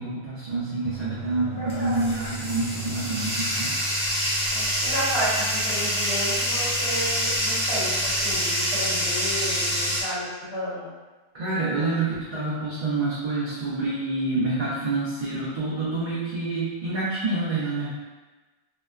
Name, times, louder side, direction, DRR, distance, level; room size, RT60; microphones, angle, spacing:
voice 1, 0.0-3.8 11.3-17.9, right 3 dB, 50° right, -9 dB, 0.6 m, -27 dB
Bathtub (filling or washing), 0.8-10.0, equal, 5° left, 0.5 m, -26 dB
voice 2, 1.6-2.0 4.5-10.9 12.5-12.6, equal, 75° left, -10 dB, 1.4 m, -32 dB
2.9 x 2.1 x 2.3 m, 1.2 s
omnidirectional pair, 1.1 m